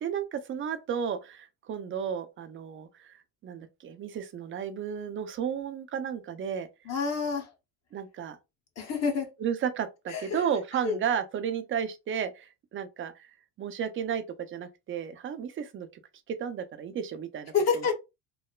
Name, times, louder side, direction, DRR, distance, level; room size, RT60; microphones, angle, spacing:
voice 1, 0.0-3.2 3.4-6.7 7.9-8.4 9.4-13.3 13.6-15.9 16.3-17.9, right 8 dB, 30° right, 0.4 m, -33 dB
voice 2, 6.9-7.5 8.8-9.3 10.1-10.4 10.8-11.0 17.5-17.9, left 5 dB, 40° left, 0.9 m, -27 dB
3.1 x 2.1 x 2.2 m
supercardioid pair, 105°, 40 cm